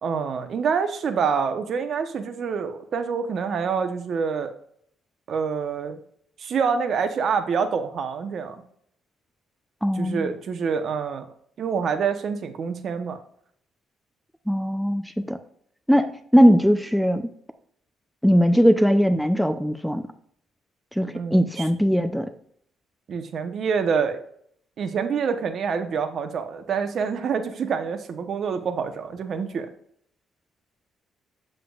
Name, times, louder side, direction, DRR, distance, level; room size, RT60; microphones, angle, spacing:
voice 1, 0.0-4.5 5.3-6.0 6.4-8.6 9.9-11.3 11.6-13.2 21.1-21.7 23.1-24.2 24.8-29.7, right 6 dB, 55° right, 8 dB, 1.0 m, -26 dB
voice 2, 9.8-10.3 14.5-15.4 15.9-17.2 18.2-20.0 21.0-22.3, equal, ahead, 9 dB, 0.5 m, -20 dB
7.8 x 7.6 x 2.4 m, 0.65 s
cardioid pair, 115°, 0 cm